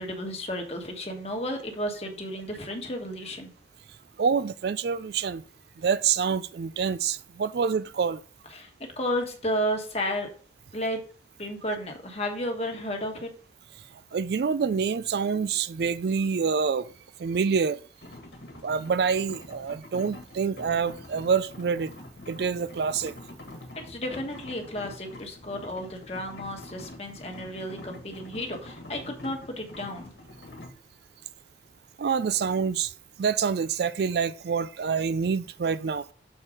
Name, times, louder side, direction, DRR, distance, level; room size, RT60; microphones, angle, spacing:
voice 1, 0.0-3.5 8.5-8.7 9.0-10.3 10.7-11.0 11.4-13.3 23.8-30.1, equal, 35° left, 1.4 m, -32 dB
voice 2, 4.2-5.4 5.8-8.2 14.1-16.9 17.2-17.8 18.6-21.9 22.3-23.1 32.0-32.9 33.2-36.0, right 6 dB, 60° right, 0.4 m, -26 dB
sound 1, 18.0-30.7, left 1 dB, 65° left, 1.5 m, -45 dB
6.5 x 4.4 x 4.9 m
head